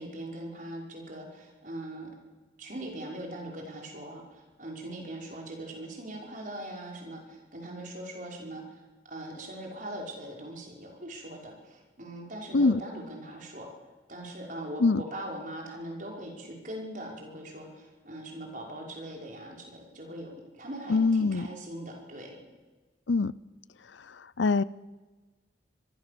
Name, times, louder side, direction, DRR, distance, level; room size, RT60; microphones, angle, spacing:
voice 1, 0.0-2.1 2.6-8.6 9.1-13.7 14.1-22.5, right 1 dB, 45° right, 0 dB, 5.7 m, -41 dB
voice 2, 20.9-21.5 23.1-23.3 24.0-24.6, left 3 dB, 80° left, 19 dB, 0.7 m, -24 dB
25.5 x 22.5 x 7.0 m, 1.3 s
head